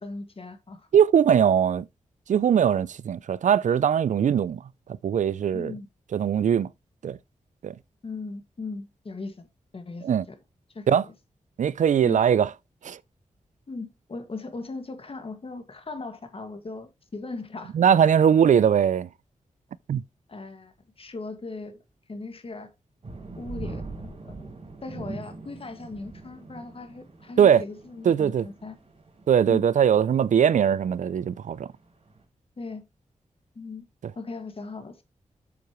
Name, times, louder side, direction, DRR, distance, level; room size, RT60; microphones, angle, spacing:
voice 1, 0.0-0.9 5.5-5.9 8.0-9.5 9.7-10.4 10.7-11.1 12.0-12.2 13.7-17.8 20.3-21.8 22.1-22.7 23.4-24.5 24.8-28.8 29.5-29.7 32.6-32.8 33.6-33.9 34.2-35.0, left 3 dB, 45° left, 1.9 m, -38 dB
voice 2, 0.9-1.8 2.3-4.6 5.0-5.7 6.1-6.7 7.0-7.2 7.6-7.7 10.0-10.2 10.9-11.0 11.6-12.5 12.8-13.0 17.7-19.1 19.9-20.0 27.4-27.6 28.1-28.5 29.3-31.7, right 8 dB, 70° right, 0.4 m, -20 dB
sound 1, 23.0-32.2, right 3 dB, 50° right, 4.0 m, -42 dB
8.1 x 7.0 x 3.1 m
cardioid pair, 80°, 13 cm